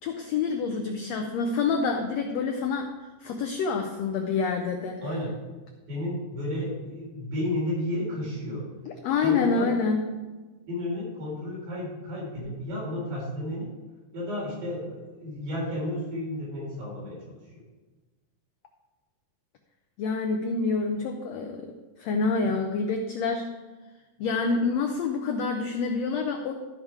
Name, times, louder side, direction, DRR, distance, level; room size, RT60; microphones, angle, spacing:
voice 1, 0.0-2.9 3.2-5.0 9.0-10.0 20.0-23.5 24.2-26.5, left 4 dB, 85° left, 4 dB, 1.5 m, -27 dB
voice 2, 5.0-5.4 5.9-8.7 9.2-9.7 10.7-13.7 14.1-17.4, left 1 dB, 90° right, -5 dB, 5.6 m, -32 dB
13.5 x 5.5 x 4.7 m, 1.2 s
omnidirectional pair, 3.9 m